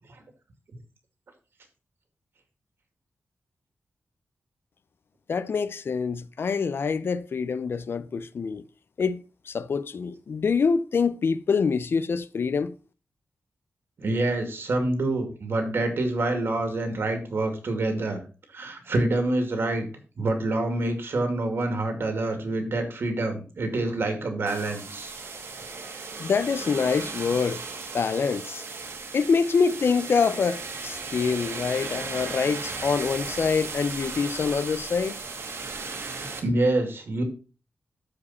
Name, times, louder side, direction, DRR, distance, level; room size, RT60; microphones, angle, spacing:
voice 1, 5.3-8.6 9.0-12.7 26.2-27.6 27.9-28.6 29.1-35.2, left 5 dB, 60° left, 0.5 m, -25 dB
voice 2, 14.0-18.2 18.5-19.9 20.2-25.2 36.4-37.2, right 2 dB, 60° right, 2.4 m, -26 dB
sound 1, 24.5-36.4, right 4 dB, 80° right, 2.2 m, -36 dB
13.5 x 5.0 x 4.2 m
wide cardioid pair, 145°, 4 cm